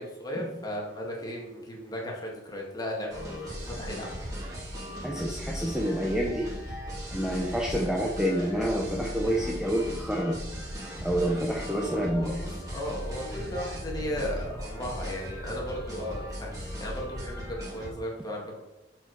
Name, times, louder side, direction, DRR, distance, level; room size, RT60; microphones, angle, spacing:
voice 1, 0.0-4.1 11.8-18.6, equal, 20° left, -1 dB, 1.9 m, -36 dB
sound 1, 3.1-17.9, equal, 20° right, 2.6 m, -37 dB
voice 2, 5.0-6.5 7.1-10.4 11.0-12.4, equal, 5° right, -1 dB, 0.7 m, -28 dB
7.6 x 4.7 x 4.8 m, 0.99 s
head